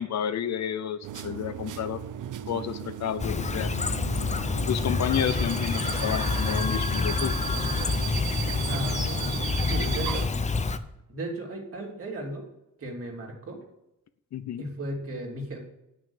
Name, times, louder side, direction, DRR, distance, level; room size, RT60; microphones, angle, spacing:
voice 1, 0.0-2.0 2.5-3.7 4.6-7.4 14.3-14.6, left 9 dB, 60° left, 12 dB, 0.7 m, -30 dB
sound 1, 1.0-10.3, right 10 dB, 80° right, 0.8 m, -36 dB
Chirp tweet, 3.2-10.8, left 4 dB, 25° left, 0.6 m, -27 dB
voice 2, 8.6-9.3 9.6-10.2 11.1-12.5 12.8-13.6 14.6-15.6, right 1 dB, 50° right, -1 dB, 3.0 m, -35 dB
8.9 x 6.4 x 7.1 m, 0.86 s
cardioid pair, 125°, 31 cm